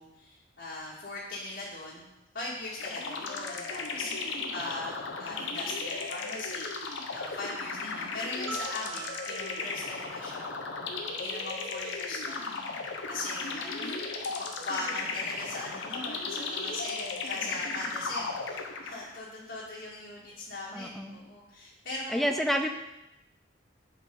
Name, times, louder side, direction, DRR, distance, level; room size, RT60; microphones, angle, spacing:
voice 1, 0.0-2.1 2.3-10.9 11.1-12.5 13.0-22.4, left 2 dB, 60° left, -8 dB, 1.7 m, -40 dB
sound 1, 2.8-19.2, left 4 dB, 80° left, 0.9 m, -36 dB
sound 2, 8.5-11.6, right 5 dB, 80° right, 1.6 m, -45 dB
voice 2, 20.7-21.2 22.1-22.7, equal, ahead, 5 dB, 0.5 m, -28 dB
7.9 x 4.6 x 5.3 m, 0.92 s
head